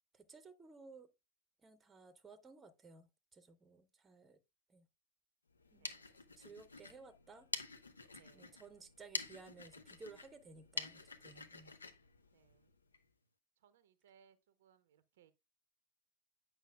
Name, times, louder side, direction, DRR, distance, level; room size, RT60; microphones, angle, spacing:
voice 1, 0.1-1.1 1.6-4.4 4.7-4.9 5.7-6.0 6.4-7.5 8.3-11.8, right 4 dB, 15° right, 0.7 m, -57 dB
sound 1, 5.5-13.0, left 3 dB, 75° left, 0.6 m, -48 dB
voice 2, 5.8-6.3 8.2-8.8 12.3-12.7 13.6-15.3, right 8 dB, 55° right, 0.5 m, -69 dB
8.3 x 5.7 x 2.2 m
figure-of-eight pair, 90°, 0 cm